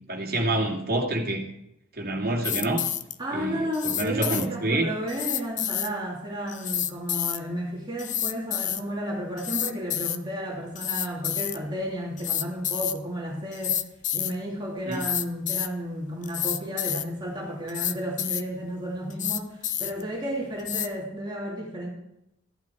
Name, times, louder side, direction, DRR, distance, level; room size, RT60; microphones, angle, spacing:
voice 1, 0.1-1.5 1.9-2.8 3.3-4.9 14.9-15.0, right 2 dB, 50° right, -1 dB, 2.5 m, -27 dB
sound 1, 2.4-3.1 3.7-4.5 5.1-5.9 6.5-7.4 8.0-8.8 9.4-10.2 10.7-11.6 12.2-13.0 13.5-14.3 14.9-15.7 16.2-17.0 17.7-18.4 19.1-20.0 20.6-20.9, left 11 dB, 40° left, 0.6 m, -29 dB
voice 2, 3.2-13.8 14.1-21.9, equal, 25° right, -4 dB, 2.8 m, -32 dB
15.0 x 11.0 x 4.6 m, 0.83 s
head